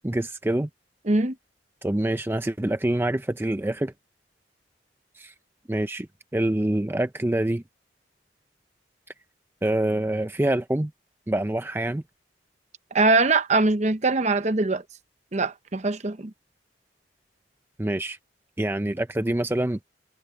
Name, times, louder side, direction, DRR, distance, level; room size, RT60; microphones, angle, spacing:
voice 1, 0.0-0.7 1.8-3.9 5.1-5.3 5.7-6.1 6.3-7.6 9.6-10.9 11.3-12.0 17.8-18.2 18.6-19.8, right 1 dB, 15° right, 0.5 m, -25 dB
voice 2, 12.9-14.8 15.3-16.3, right 3 dB, 40° right, 0.9 m, -22 dB
head